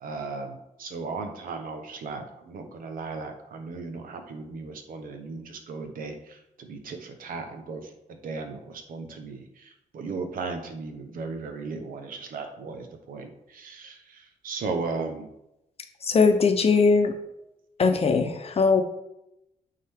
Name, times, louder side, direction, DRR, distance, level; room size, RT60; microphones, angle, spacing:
voice 1, 0.0-7.9 8.2-15.3, right 4 dB, 85° right, 5 dB, 1.0 m, -36 dB
voice 2, 16.0-17.1 17.8-18.8, left 4 dB, 45° left, 6 dB, 0.7 m, -20 dB
8.8 x 3.8 x 3.5 m, 0.86 s
cardioid pair, 95°, 14 cm